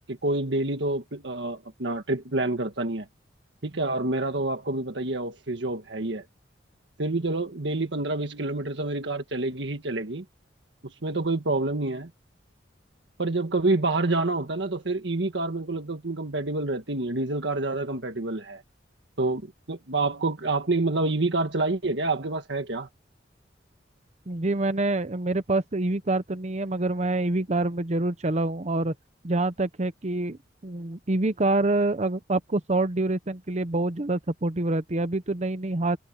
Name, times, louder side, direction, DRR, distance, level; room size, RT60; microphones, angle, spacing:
voice 1, 0.1-3.1 3.6-6.2 7.0-10.2 10.8-12.1 13.2-18.6 19.2-22.9, right 2 dB, 70° right, 1.6 m, -28 dB
voice 2, 24.3-28.9 29.2-36.0, right 2 dB, 35° right, 0.8 m, -26 dB
head